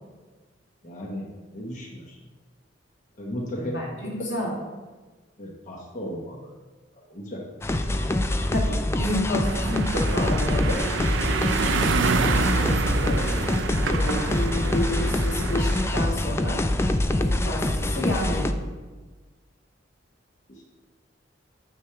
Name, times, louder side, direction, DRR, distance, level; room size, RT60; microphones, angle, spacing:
voice 1, 0.8-2.2 3.2-3.7 5.4-6.6 7.1-7.4 20.5-20.6, equal, 40° left, -3 dB, 1.0 m, -36 dB
voice 2, 3.6-4.5 8.5-10.8 12.0-16.6 17.1-18.4, left 1 dB, 85° left, -2 dB, 2.0 m, -30 dB
sound 1, 7.6-18.5, left 1 dB, 15° left, 0.3 m, -25 dB
sound 2, 9.4-16.1, right 4 dB, 80° right, 0.5 m, -27 dB
9.2 x 3.2 x 6.7 m, 1.3 s
head